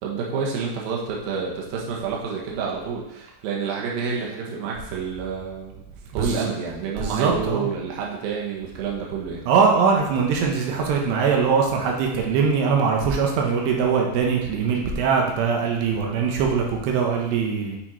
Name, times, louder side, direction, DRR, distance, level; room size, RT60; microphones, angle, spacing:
voice 1, 0.0-5.7 6.1-9.4, right 5 dB, 70° right, -3 dB, 2.7 m, -29 dB
voice 2, 7.0-7.7 9.5-17.8, right 5 dB, 90° right, 0 dB, 3.2 m, -22 dB
8.7 x 4.2 x 4.5 m, 0.90 s
omnidirectional pair, 4.8 m